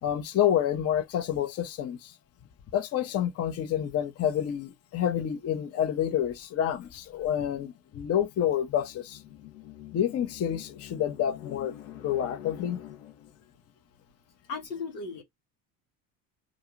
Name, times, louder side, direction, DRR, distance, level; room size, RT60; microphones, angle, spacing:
voice 1, 0.0-2.1 2.7-9.2 9.9-11.7 12.0-12.8, left 10 dB, 30° left, 0.6 m, -28 dB
sound 1, 8.1-13.5, left 12 dB, 70° left, 0.8 m, -46 dB
voice 2, 14.4-15.2, left 4 dB, 85° left, 1.1 m, -36 dB
2.5 x 2.3 x 2.9 m
hypercardioid pair, 65°, 48 cm